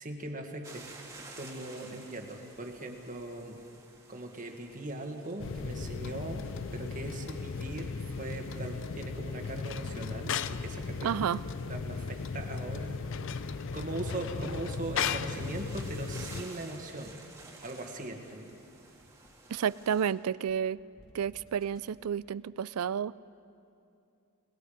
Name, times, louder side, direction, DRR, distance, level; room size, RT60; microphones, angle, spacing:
voice 1, 0.0-3.6 4.1-6.5 6.7-11.2 11.7-17.1 17.6-18.5, right 2 dB, 35° right, 3 dB, 1.8 m, -40 dB
sound 1, 0.6-20.1, right 3 dB, 15° right, 1.9 m, -54 dB
sound 2, 5.4-16.4, left 5 dB, 55° left, 0.5 m, -36 dB
sound 3, 6.2-7.7 8.2-8.3 8.7-8.8 9.2-9.3 9.6-9.7 10.1-11.7 12.1-12.2 12.6-12.7 13.1-15.6 16.0-16.1 16.5-16.6 17.0-17.2 17.5-17.6 18.0-19.5 20.0-20.1 20.5-20.6 21.0-21.8, equal, 25° left, 3.0 m, -60 dB
voice 2, 11.0-11.4 19.5-20.8 21.1-23.1, right 8 dB, 85° right, 20 dB, 0.4 m, -31 dB
29.5 x 19.5 x 5.1 m, 2.6 s
head